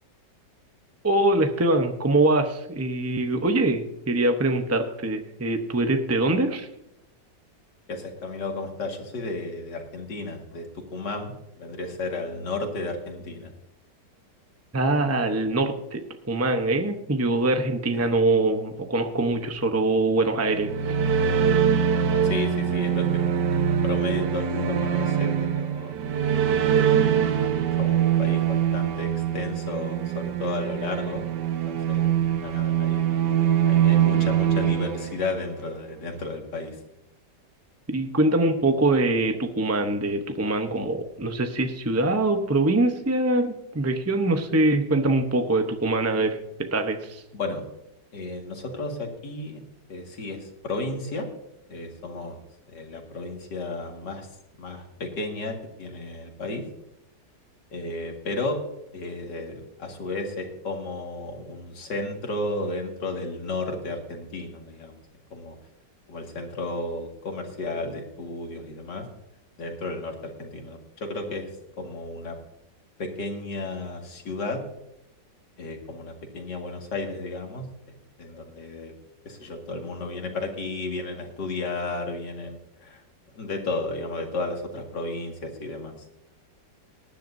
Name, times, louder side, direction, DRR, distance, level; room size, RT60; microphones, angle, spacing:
voice 1, 1.0-6.7 14.7-21.0 37.9-47.2, right 2 dB, 20° right, 5 dB, 0.3 m, -23 dB
voice 2, 7.9-13.5 17.9-18.0 22.2-23.2 23.5-25.9 26.6-27.2 27.8-31.3 31.7-33.1 33.7-36.8 47.3-47.6 48.1-49.6 49.9-51.3 51.7-52.4 52.7-54.3 54.6-56.6 57.7-58.6 58.9-64.9 65.3-65.5 66.1-69.0 69.6-71.5 71.8-72.4 73.0-74.6 75.6-78.9 79.2-83.0 83.3-85.9, left 2 dB, 75° left, 2 dB, 2.6 m, -33 dB
sound 1, 20.4-35.7, right 9 dB, 75° right, 1.5 m, -23 dB
19.0 x 10.5 x 2.7 m, 0.83 s
omnidirectional pair, 1.9 m